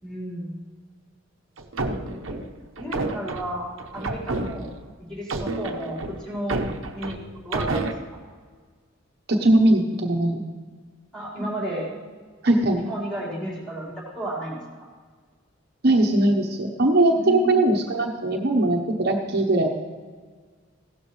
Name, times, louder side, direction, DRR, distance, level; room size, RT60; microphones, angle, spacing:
voice 1, 0.0-0.5 2.0-2.4 2.8-4.7 5.0-6.6 6.9-7.1 7.4-7.9 11.1-11.9 12.8-14.6 17.1-17.7, right 1 dB, 5° left, -5 dB, 4.5 m, -32 dB
sound 1, 1.6-4.9 5.3-7.9, right 2 dB, 90° right, 1.0 m, -30 dB
voice 2, 9.3-10.4 12.4-12.8 15.8-19.7, right 1 dB, 55° right, 1 dB, 1.1 m, -20 dB
16.0 x 12.0 x 3.3 m, 1.6 s
head